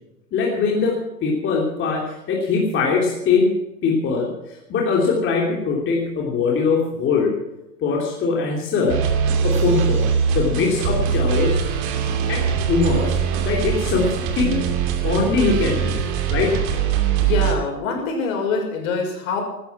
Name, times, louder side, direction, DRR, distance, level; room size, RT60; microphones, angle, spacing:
voice 1, 0.3-3.6 3.8-4.3 4.7-7.3 7.8-9.0 9.4-11.6 12.3-13.2 13.4-14.7 15.0-16.0 16.3-16.6, left 4 dB, 25° left, -2 dB, 3.1 m, -21 dB
sound 1, 8.9-17.6, right 7 dB, 40° right, 2.7 m, -22 dB
voice 2, 17.1-19.4, left 4 dB, 55° left, 2 dB, 6.3 m, -24 dB
15.5 x 13.5 x 6.1 m, 0.93 s
hypercardioid pair, 120°, 50 cm